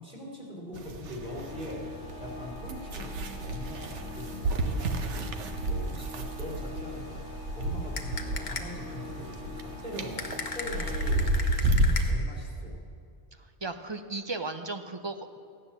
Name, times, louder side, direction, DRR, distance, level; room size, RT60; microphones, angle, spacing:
voice 1, 0.0-12.8, equal, 5° right, -3 dB, 3.6 m, -42 dB
sound 1, 0.7-12.1, right 1 dB, 85° right, 1.3 m, -31 dB
Organ, 1.2-12.0, left 4 dB, 85° left, 1.3 m, -45 dB
sound 2, 8.0-8.9 10.2-12.4, left 4 dB, 45° left, 1.1 m, -38 dB
voice 2, 13.4-15.4, right 3 dB, 30° right, 7 dB, 0.6 m, -36 dB
15.0 x 9.7 x 7.3 m, 2.3 s
omnidirectional pair, 1.2 m